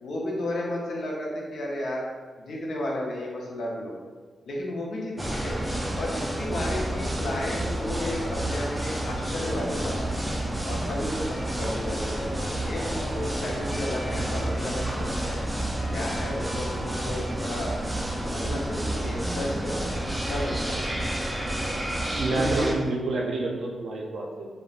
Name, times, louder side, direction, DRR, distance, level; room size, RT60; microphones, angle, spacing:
voice 1, 0.0-2.1 2.4-3.9 4.5-5.6 5.9-10.2 10.6-15.4 15.9-17.7 18.2-20.0 20.3-20.8, left 1 dB, 70° left, -3 dB, 0.6 m, -33 dB
sound 1, 5.2-22.8, right 1 dB, 10° right, 0.3 m, -30 dB
voice 2, 22.2-24.5, right 2 dB, 80° right, -1 dB, 0.4 m, -28 dB
3.0 x 2.0 x 2.4 m, 1.5 s
wide cardioid pair, 120°, 0 cm